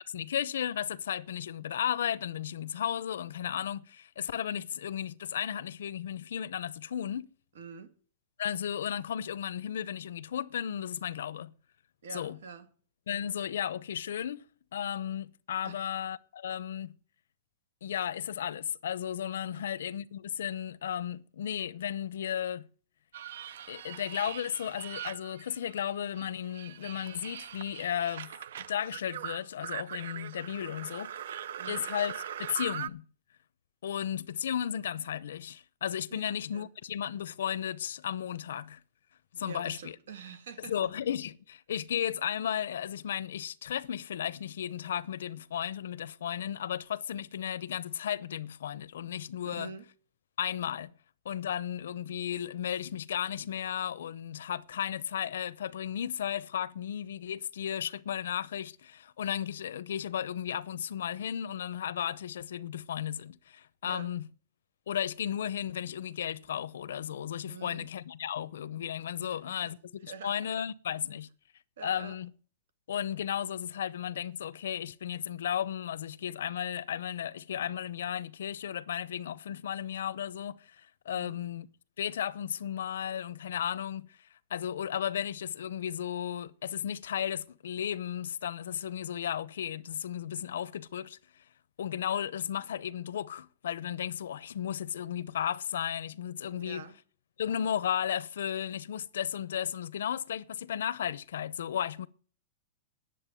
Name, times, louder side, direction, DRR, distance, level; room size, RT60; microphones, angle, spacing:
voice 1, 0.1-7.3 8.4-11.5 12.1-12.4 13.1-14.5 14.7-16.9 17.8-22.7 23.7-28.3 28.7-31.4 31.7-32.1 32.4-33.0 33.8-38.8 39.3-39.9 40.7-49.7 50.4-50.9 51.2-64.2 64.9-71.3 71.8-72.3 72.9-81.7 82.0-84.1 84.5-91.2 91.8-96.8 97.4-102.1, left 9 dB, 85° left, 0.7 m, -34 dB
voice 2, 7.5-7.9 12.0-12.7 15.6-15.9 19.5-19.7 31.6-31.8 36.1-36.7 39.4-40.7 49.4-49.9 63.8-64.1 67.4-67.9 69.2-69.7 70.1-70.4 71.8-72.2 81.1-81.4 96.5-97.0, right 5 dB, 90° right, 2.1 m, -46 dB
sound 1, 23.1-25.9 26.2-32.9, right 10 dB, 70° right, 0.5 m, -41 dB
10.0 x 7.5 x 8.9 m
supercardioid pair, 175°, 0 cm